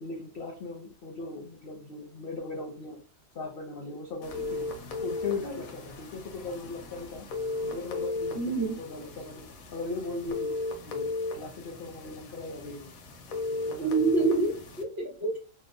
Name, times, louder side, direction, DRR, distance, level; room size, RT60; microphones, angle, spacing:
voice 1, 0.0-3.0 3.3-4.6 5.0-7.3 7.6-10.5 10.8-12.9 13.6-14.1, left 3 dB, 60° left, 0 dB, 0.6 m, -38 dB
sound 1, 4.2-14.8, left 3 dB, 85° left, 1.0 m, -36 dB
voice 2, 8.3-8.8 13.8-15.4, right 4 dB, 45° right, 0 dB, 0.9 m, -27 dB
2.8 x 2.0 x 2.5 m, 0.34 s
omnidirectional pair, 1.4 m